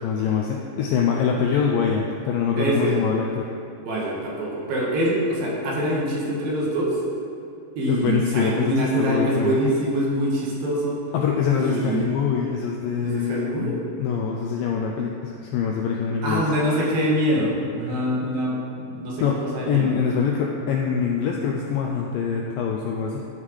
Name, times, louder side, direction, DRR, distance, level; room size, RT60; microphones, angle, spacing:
voice 1, 0.0-3.5 7.9-9.6 11.1-16.4 19.2-19.4 19.7-23.2, left 7 dB, 85° left, 0 dB, 2.0 m, -24 dB
voice 2, 2.6-3.0 3.8-7.0 7.8-11.0 11.5-12.0 13.0-13.8 16.2-19.2 19.5-19.9, right 1 dB, 75° right, -4 dB, 3.0 m, -24 dB
12.0 x 5.6 x 3.2 m, 2.8 s
omnidirectional pair, 4.5 m